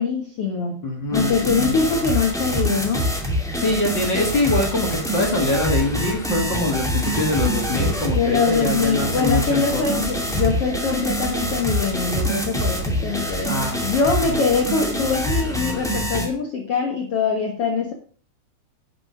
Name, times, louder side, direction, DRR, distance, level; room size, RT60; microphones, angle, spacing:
voice 1, 0.0-0.8 1.1-3.1 8.1-13.5 13.8-17.9, left 5 dB, 55° left, 1 dB, 1.7 m, -23 dB
voice 2, 0.8-1.9 3.5-10.1 13.5-13.8 14.3-14.4, left 2 dB, 40° left, 0 dB, 1.8 m, -24 dB
sound 1, 1.1-16.3, equal, ahead, 0.9 m, -25 dB
10.5 x 6.5 x 5.7 m, 0.43 s
omnidirectional pair, 4.5 m